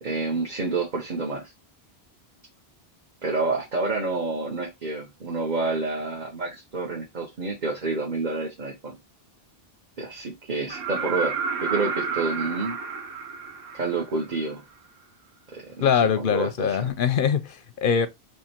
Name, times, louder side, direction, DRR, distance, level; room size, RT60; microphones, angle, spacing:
voice 1, 0.0-1.5 3.2-8.9 10.0-12.8 13.7-14.6 15.5-16.9, right 3 dB, 45° right, 1.2 m, -29 dB
sound 1, 10.7-14.5 16.4-16.5, right 5 dB, 80° right, 1.2 m, -31 dB
voice 2, 15.8-18.1, left 7 dB, 65° left, 0.7 m, -23 dB
3.7 x 3.3 x 4.3 m
omnidirectional pair, 1.1 m